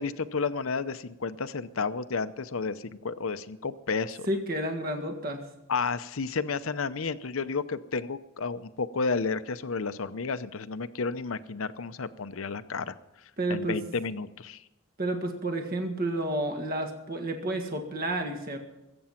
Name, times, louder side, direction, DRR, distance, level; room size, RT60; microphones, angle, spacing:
voice 1, 0.0-4.3 5.7-12.9 13.5-14.6, left 4 dB, 80° left, 13 dB, 0.7 m, -31 dB
voice 2, 4.3-5.4 13.4-13.8 15.0-18.6, right 1 dB, 45° right, 4 dB, 1.9 m, -30 dB
21.5 x 8.6 x 5.8 m, 0.96 s
head